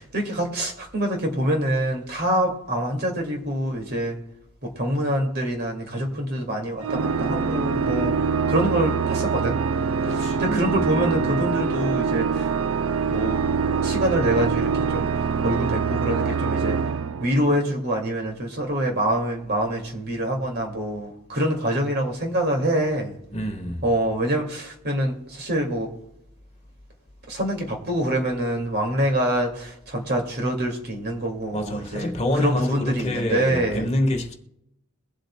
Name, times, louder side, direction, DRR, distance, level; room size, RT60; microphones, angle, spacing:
voice 1, 0.0-4.2 4.6-8.2 8.5-9.6 10.1-12.5 13.1-13.4 13.8-16.8 17.2-23.2 23.8-25.9 27.3-33.9, right 1 dB, 50° right, 2.2 m, -25 dB
Organ, 6.8-17.8, right 5 dB, 70° right, 0.4 m, -24 dB
voice 2, 10.0-10.8 23.3-23.8 31.5-34.3, left 1 dB, 30° left, 1.4 m, -27 dB
22.5 x 7.8 x 2.2 m
head